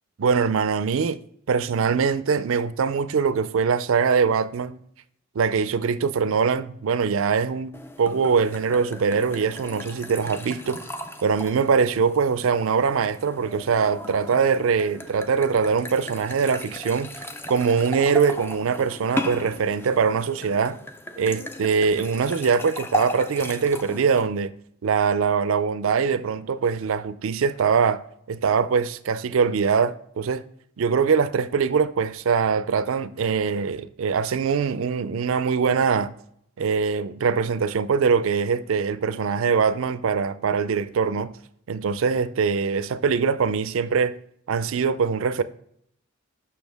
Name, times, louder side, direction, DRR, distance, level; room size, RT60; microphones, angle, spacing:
voice 1, 0.2-1.2 1.5-4.8 5.4-10.8 11.2-17.1 17.5-20.8 21.2-24.5 24.8-28.0 28.3-30.4 30.8-36.1 36.6-41.3 41.7-44.2 44.5-45.4, right 5 dB, 65° right, 0.4 m, -22 dB
sound 1, 7.7-24.2, left 1 dB, 10° left, 0.3 m, -36 dB
6.3 x 5.7 x 3.4 m
head